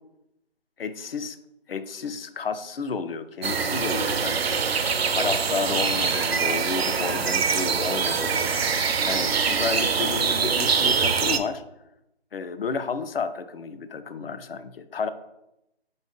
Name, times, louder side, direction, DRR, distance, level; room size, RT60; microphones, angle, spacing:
voice 1, 0.8-1.4 1.7-11.6 12.3-15.1, left 5 dB, 65° left, 12 dB, 0.5 m, -32 dB
sound 1, 3.4-11.4, right 6 dB, 70° right, 0.5 m, -24 dB
4.0 x 3.6 x 3.6 m, 0.86 s
figure-of-eight pair, 155°, 32 cm